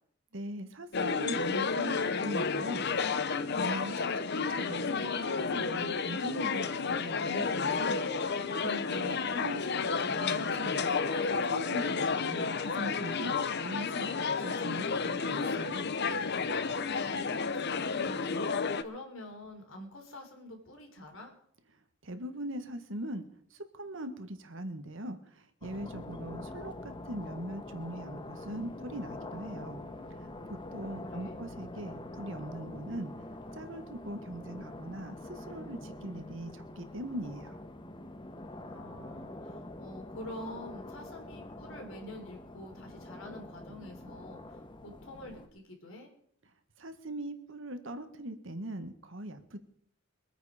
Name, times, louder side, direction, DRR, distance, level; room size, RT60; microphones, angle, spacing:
voice 1, 0.3-8.0 8.6-10.8 11.3-15.8 22.0-23.2 23.5-29.8 30.5-33.1 33.5-37.6 46.8-49.6, right 1 dB, 65° right, 8 dB, 1.5 m, -41 dB
sound 1, 0.9-18.8, left 5 dB, 55° left, 0.8 m, -31 dB
voice 2, 10.0-10.5 16.9-21.3 26.3-26.4 31.0-31.4 38.6-46.1, left 1 dB, 70° left, 3 dB, 3.9 m, -47 dB
sound 2, 25.6-45.5, left 1 dB, 25° left, 1.0 m, -45 dB
23.5 x 9.3 x 5.1 m, 0.64 s
head